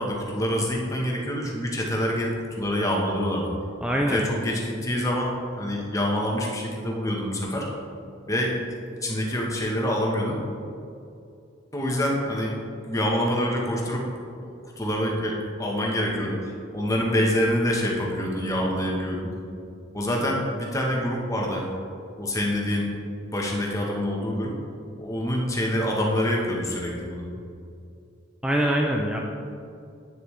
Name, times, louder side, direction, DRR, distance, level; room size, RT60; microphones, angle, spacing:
voice 1, 0.0-3.5 4.1-7.7 8.3-8.5 9.0-10.4 11.7-12.6 12.8-14.1 14.4-14.5 14.8-19.3 19.9-21.7 22.2-23.0 23.3-24.5 25.0-27.2, equal, 15° left, -2 dB, 1.0 m, -26 dB
voice 2, 3.8-4.3 28.4-29.2, equal, 5° right, 0 dB, 0.4 m, -23 dB
9.0 x 6.6 x 3.2 m, 2.5 s
head